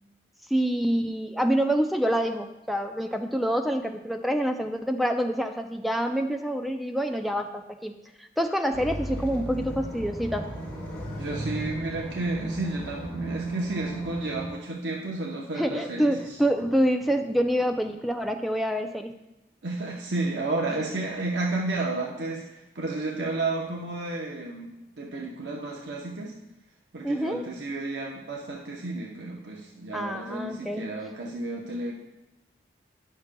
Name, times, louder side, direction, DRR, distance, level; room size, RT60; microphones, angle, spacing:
voice 1, 0.5-10.5 15.5-19.2 27.0-27.4 29.9-31.0, equal, ahead, 5 dB, 0.3 m, -27 dB
sound 1, 8.7-14.5, right 1 dB, 15° left, 1.9 m, -35 dB
voice 2, 11.2-16.2 19.6-26.3 26.9-31.9, right 2 dB, 90° right, -2 dB, 0.8 m, -32 dB
9.7 x 6.6 x 2.2 m, 0.94 s
head